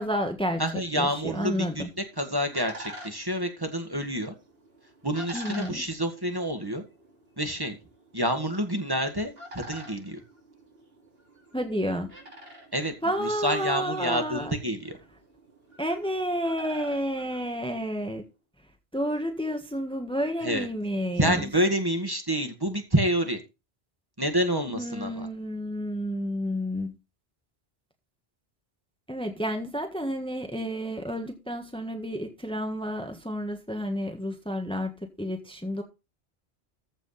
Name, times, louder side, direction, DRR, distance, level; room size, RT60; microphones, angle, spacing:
voice 1, 0.0-0.6 0.9-1.9 5.3-5.9 11.5-12.2 13.0-14.6 15.8-18.2 18.9-21.5 24.7-26.9 29.1-35.8, equal, 5° left, 1.5 m, -30 dB
voice 2, 0.6-1.9 2.2-4.3 5.0-6.8 7.4-7.8 8.1-10.2 12.7-12.9 13.2-14.9 20.4-20.7 21.2-23.4 24.2-25.3, equal, 20° right, 1.9 m, -28 dB
sound 1, 1.9-18.1, equal, 70° right, 3.7 m, -48 dB
14.5 x 4.9 x 5.8 m
omnidirectional pair, 1.0 m